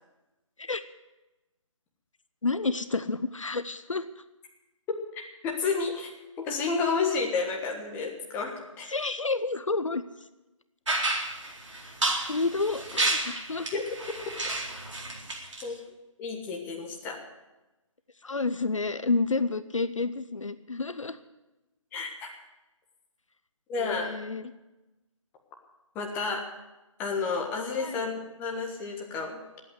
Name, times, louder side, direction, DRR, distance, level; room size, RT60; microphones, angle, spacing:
voice 1, 2.4-4.1 8.9-10.0 11.8-11.9 12.3-13.7 18.2-21.2 23.8-24.4 27.8-28.0, left 3 dB, 70° left, 12 dB, 0.9 m, -30 dB
voice 2, 5.1-6.1 6.4-9.0 13.7-13.8 15.6-15.8 16.2-17.2 21.9-22.3 23.7-24.1 25.9-26.4 27.0-29.4, left 4 dB, 10° left, 0 dB, 1.5 m, -31 dB
sound 1, 10.9-15.6, right 2 dB, 65° right, 4.1 m, -30 dB
20.0 x 8.5 x 7.9 m, 1.0 s
figure-of-eight pair, 150°, 17 cm